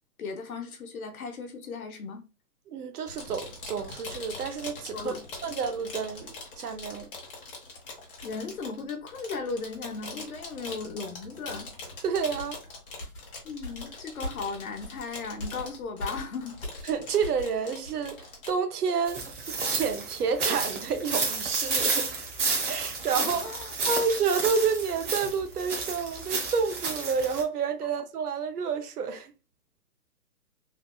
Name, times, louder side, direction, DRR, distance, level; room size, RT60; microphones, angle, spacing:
voice 1, 0.2-2.2 4.9-5.3 8.2-11.7 13.4-16.6 23.2-23.7, left 4 dB, 65° left, 0.9 m, -36 dB
voice 2, 2.7-5.1 5.4-7.1 12.0-12.6 16.8-22.1 22.7-23.4 23.9-29.3, right 6 dB, 80° right, 0.8 m, -29 dB
sound 1, 3.1-18.5, left 3 dB, 35° left, 0.9 m, -43 dB
sound 2, 12.4-17.6 17.8-18.0, left 1 dB, 15° left, 1.1 m, -41 dB
sound 3, 19.1-27.4, right 4 dB, 50° right, 1.0 m, -31 dB
3.3 x 2.4 x 2.3 m
hypercardioid pair, 170°, 45 cm